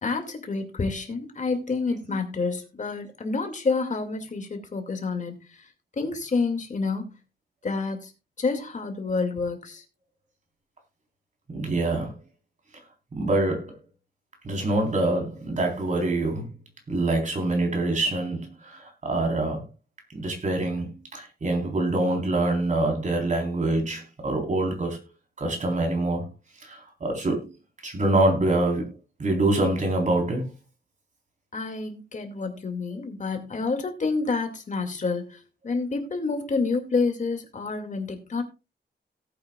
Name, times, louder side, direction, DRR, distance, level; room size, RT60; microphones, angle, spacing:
voice 1, 0.0-5.4 6.0-7.1 7.6-8.1 8.4-9.8 31.5-38.4, left 4 dB, 45° left, 2.3 m, -28 dB
voice 2, 11.5-12.2 13.1-13.8 14.4-16.5 16.9-19.7 20.1-25.0 25.4-26.3 26.6-27.5 27.8-28.9 29.2-30.5, right 2 dB, 45° right, 4.0 m, -25 dB
18.0 x 8.5 x 2.4 m
wide cardioid pair, 150°, 18 cm